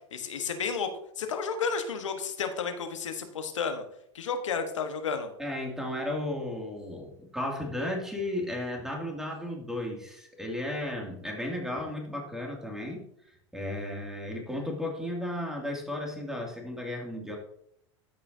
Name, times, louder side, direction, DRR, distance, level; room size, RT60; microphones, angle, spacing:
voice 1, 0.1-0.9 1.2-3.8 4.1-5.3, left 5 dB, 85° left, 7 dB, 1.2 m, -32 dB
voice 2, 5.4-13.0 13.5-17.4, left 1 dB, 5° right, 0 dB, 2.4 m, -34 dB
12.5 x 5.6 x 2.7 m, 0.72 s
hypercardioid pair, 100°, 15 cm